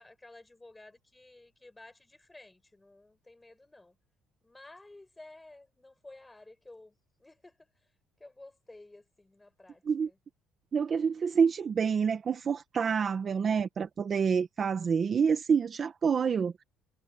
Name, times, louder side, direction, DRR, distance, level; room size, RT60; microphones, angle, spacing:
voice 1, 0.0-4.0 4.4-6.9 7.2-7.7 8.2-10.2 13.2-13.5, left 2 dB, 10° left, 7.0 m, -53 dB
voice 2, 10.7-16.5, right 6 dB, 35° right, 1.3 m, -27 dB
cardioid pair, 135°, 0 cm